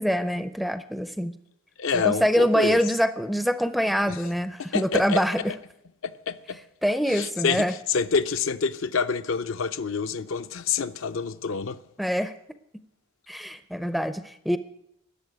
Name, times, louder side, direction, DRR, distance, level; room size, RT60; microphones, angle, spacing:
voice 1, 0.0-1.4 1.9-5.5 6.8-7.7 12.0-12.3 13.3-14.6, equal, ahead, 0.5 m, -25 dB
voice 2, 1.8-2.8 4.1-4.2 4.7-5.6 6.0-6.6 7.1-11.8, left 5 dB, 60° left, 0.5 m, -27 dB
12.5 x 7.3 x 9.5 m
head